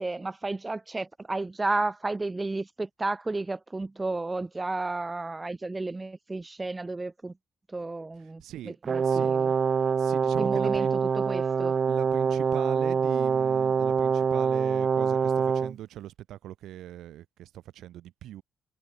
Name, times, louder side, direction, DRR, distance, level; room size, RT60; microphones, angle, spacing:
voice 1, 0.0-7.3 7.7-9.5 10.4-10.9 11.2-11.8, right 2 dB, 20° right, 1.6 m, -32 dB
voice 2, 8.4-8.8 9.0-9.3 10.0-11.0 11.9-18.4, right 13 dB, 80° right, 4.4 m, -41 dB
Brass instrument, 8.8-15.8, right 6 dB, 45° right, 0.8 m, -25 dB
cardioid pair, 90°, 0 cm